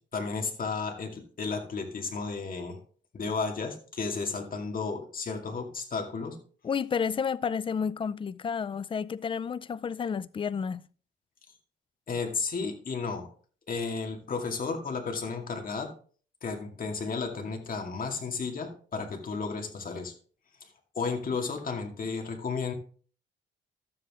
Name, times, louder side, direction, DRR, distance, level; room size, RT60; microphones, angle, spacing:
voice 1, 0.1-2.8 3.1-6.4 12.1-13.3 13.7-15.9 16.4-20.1 20.6-20.7 20.9-22.7, left 4 dB, 45° left, 2.3 m, -33 dB
voice 2, 6.6-10.9, left 6 dB, 25° left, 0.4 m, -31 dB
12.5 x 7.7 x 3.7 m
cardioid pair, 90°, 20 cm